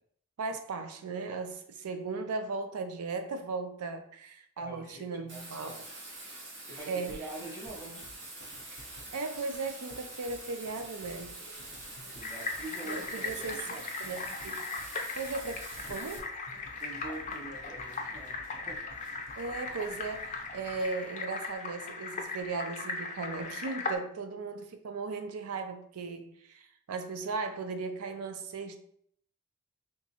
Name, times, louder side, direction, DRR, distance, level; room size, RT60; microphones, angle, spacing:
voice 1, 0.4-5.7 6.9-7.2 9.1-11.3 12.8-14.6 15.2-16.3 19.3-28.8, right 4 dB, 80° right, 7 dB, 0.5 m, -37 dB
voice 2, 4.6-5.8 6.7-8.1 12.1-13.8 16.8-18.8, right 2 dB, 10° right, -4 dB, 1.0 m, -44 dB
Bathtub (filling or washing), 5.3-16.2, right 2 dB, 55° right, 0.9 m, -45 dB
sound 1, 7.7-21.2, left 2 dB, 80° left, 0.6 m, -55 dB
sound 2, 12.2-24.0, left 4 dB, 35° left, 0.4 m, -38 dB
3.4 x 2.9 x 2.8 m, 0.65 s
head